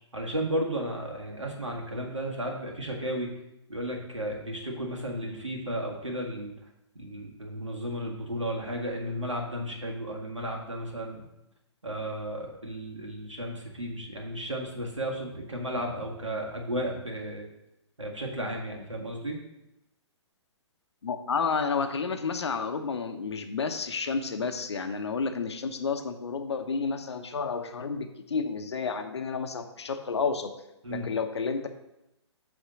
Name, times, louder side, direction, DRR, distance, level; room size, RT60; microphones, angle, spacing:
voice 1, 0.1-3.3 3.7-6.6 7.0-11.3 11.8-17.5 18.0-19.4 30.8-31.1, right 1 dB, 85° right, 0 dB, 1.8 m, -34 dB
voice 2, 21.0-30.5 30.9-31.7, left 5 dB, 65° left, 7 dB, 0.8 m, -31 dB
8.5 x 3.6 x 6.2 m, 0.90 s
figure-of-eight pair, 125°, 15 cm